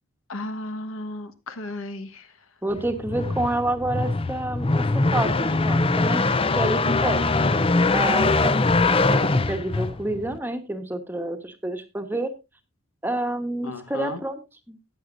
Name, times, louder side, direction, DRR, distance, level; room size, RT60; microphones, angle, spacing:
voice 1, 0.3-2.2 13.6-14.2, left 1 dB, 75° left, 9 dB, 1.4 m, -34 dB
voice 2, 2.6-6.3 6.5-7.4 7.9-12.3 13.0-14.4 14.7-14.8, right 1 dB, 10° right, 6 dB, 1.2 m, -29 dB
sound 1, 2.8-10.4, left 3 dB, 25° left, 0.5 m, -22 dB
15.0 x 9.6 x 2.6 m, 0.24 s
head